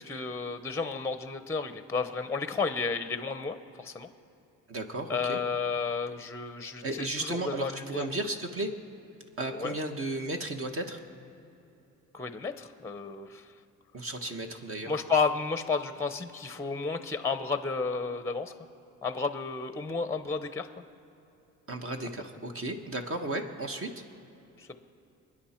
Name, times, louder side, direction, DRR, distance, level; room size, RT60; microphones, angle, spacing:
voice 1, 0.0-4.1 5.1-8.1 9.5-9.7 12.1-13.4 14.9-18.5 19.0-20.7 24.6-24.8, left 4 dB, 10° left, 9 dB, 0.7 m, -32 dB
voice 2, 4.7-5.4 6.6-8.7 9.4-11.0 13.9-14.9 21.7-23.9, right 2 dB, 45° right, 4 dB, 1.3 m, -34 dB
29.0 x 10.0 x 4.4 m, 3.0 s
cardioid pair, 115°, 32 cm